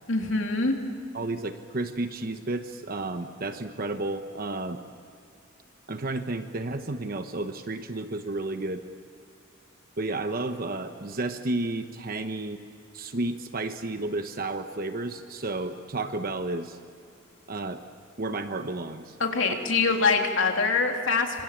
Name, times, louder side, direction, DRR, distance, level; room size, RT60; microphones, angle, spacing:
voice 1, 0.1-0.8 19.2-21.4, left 4 dB, 70° left, 2 dB, 3.2 m, -24 dB
voice 2, 1.1-4.8 5.9-8.9 10.0-12.6 12.9-16.8 17.5-17.8 18.2-19.2, right 2 dB, 45° right, 8 dB, 1.0 m, -32 dB
27.5 x 26.0 x 7.4 m, 2.5 s
head